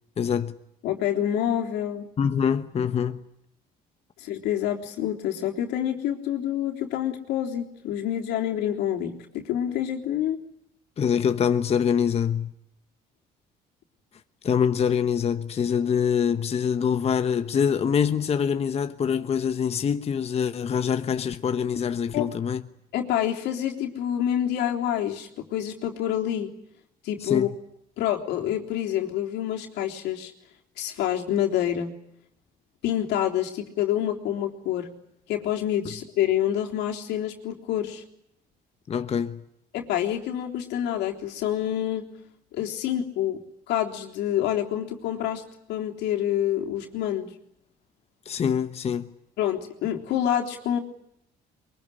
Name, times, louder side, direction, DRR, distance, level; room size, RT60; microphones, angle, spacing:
voice 1, 0.2-0.5 2.2-3.2 11.0-12.5 14.4-22.6 27.2-27.5 38.9-39.4 48.2-49.1, left 7 dB, 40° left, 1.1 m, -24 dB
voice 2, 0.8-2.1 4.2-10.4 22.1-22.3 22.9-26.5 27.0-27.5 28.0-30.3 30.8-31.9 32.8-34.9 35.3-38.0 39.7-42.0 42.5-43.4 43.7-45.4 45.7-47.3 49.4-50.8, left 11 dB, 85° left, 3.6 m, -27 dB
23.5 x 23.0 x 10.0 m
cardioid pair, 110°, 17 cm